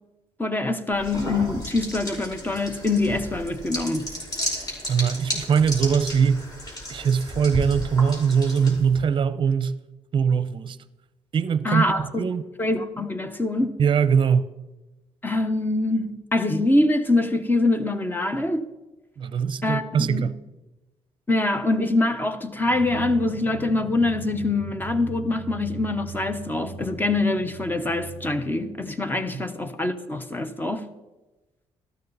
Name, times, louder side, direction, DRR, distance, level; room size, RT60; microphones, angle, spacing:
voice 1, 0.4-4.1 11.6-12.2 12.6-13.8 15.2-18.7 19.6-20.3 21.3-30.9, left 2 dB, 15° left, 1.0 m, -24 dB
sound 1, 0.9-9.0, equal, 35° left, 5.1 m, -33 dB
voice 2, 4.9-6.4 6.9-9.8 10.1-10.8 11.3-12.4 13.8-14.5 19.2-20.3 29.3-29.4, right 6 dB, 45° right, 0.7 m, -22 dB
Drum, 22.6-29.1, right 2 dB, 50° left, 4.7 m, -39 dB
13.5 x 12.5 x 4.1 m
cardioid pair, 100°, 12 cm